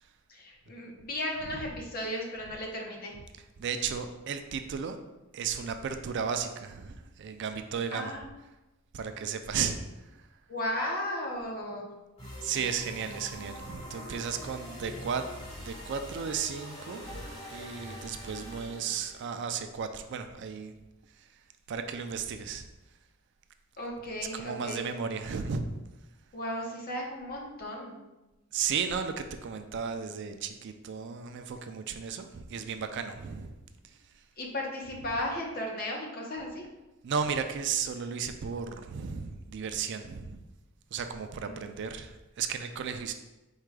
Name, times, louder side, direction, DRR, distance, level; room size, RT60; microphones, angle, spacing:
voice 1, 0.3-3.1 7.9-8.2 10.5-11.9 23.8-24.8 26.3-28.0 34.4-36.6 41.4-41.7, left 1 dB, 45° left, 0 dB, 0.8 m, -35 dB
voice 2, 3.4-5.0 5.3-8.2 8.9-9.8 10.1-10.3 12.4-15.2 15.6-20.7 21.2-21.3 21.7-22.7 24.3-25.7 28.5-33.5 37.0-40.4 40.9-43.1, right 6 dB, 55° right, 7 dB, 0.4 m, -34 dB
sound 1, 12.2-19.3, equal, 30° left, 1.4 m, -43 dB
4.7 x 2.2 x 4.7 m, 1.0 s
head